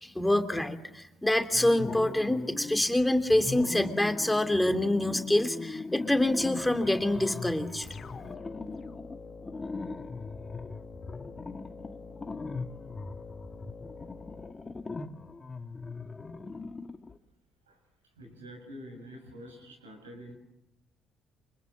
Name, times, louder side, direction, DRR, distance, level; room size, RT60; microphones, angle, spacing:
voice 1, 0.0-7.8, left 1 dB, 10° left, 6 dB, 3.0 m, -26 dB
sound 1, 1.5-2.9 3.3-17.2, left 3 dB, 25° left, 1.9 m, -40 dB
sound 2, 7.8-15.3, left 4 dB, 40° left, 2.7 m, -47 dB
voice 2, 18.2-20.3, equal, 85° right, 6 dB, 6.7 m, -46 dB
29.0 x 27.0 x 7.5 m, 0.82 s
figure-of-eight pair, 45°, 0 cm